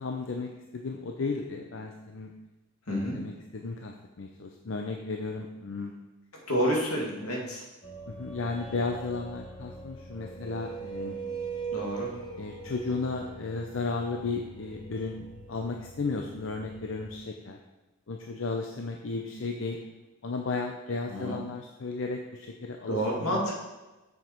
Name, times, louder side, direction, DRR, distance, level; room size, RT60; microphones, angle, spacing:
voice 1, 0.0-2.3 3.0-5.9 8.1-11.2 12.4-17.6 18.1-19.8 20.2-23.5, left 3 dB, 60° left, 3 dB, 0.6 m, -34 dB
voice 2, 2.9-3.2 6.5-7.6 11.7-12.1 21.1-21.4 22.9-23.4, equal, 80° left, -2 dB, 2.3 m, -29 dB
sound 1, 7.8-17.2, right 5 dB, 20° left, 1.0 m, -41 dB
7.3 x 6.5 x 4.4 m, 1.1 s
head